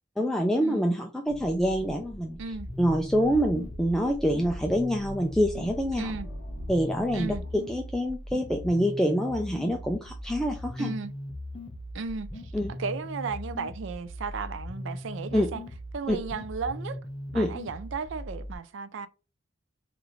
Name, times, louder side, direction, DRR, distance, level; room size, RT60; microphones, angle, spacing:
voice 1, 0.2-2.4 2.8-6.1 6.7-10.9 12.5-12.7 15.3-15.5 16.1-16.2 17.3-17.5, equal, ahead, 0.3 m, -26 dB
sound 1, 1.3-7.6, equal, 50° left, 1.0 m, -43 dB
sound 2, 2.5-18.5, left 1 dB, 25° left, 0.7 m, -39 dB
voice 2, 6.0-6.3 7.1-7.4 10.8-11.1 11.9-12.5 12.8-15.6 15.9-17.0 17.3-19.1, right 4 dB, 70° right, 0.4 m, -35 dB
4.7 x 2.5 x 3.0 m
head